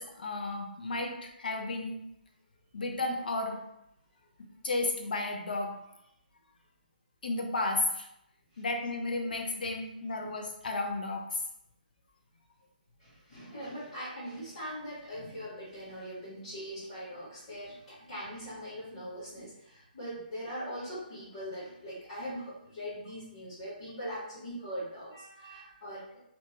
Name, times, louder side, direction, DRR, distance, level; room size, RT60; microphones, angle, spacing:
voice 1, 0.0-2.0 2.7-3.6 4.6-5.7 7.2-8.1 8.6-11.4, left 2 dB, 60° left, 2 dB, 0.6 m, -33 dB
voice 2, 13.0-26.2, equal, 35° left, -13 dB, 1.4 m, -41 dB
2.9 x 2.2 x 2.9 m, 0.80 s
hypercardioid pair, 180°, 5 cm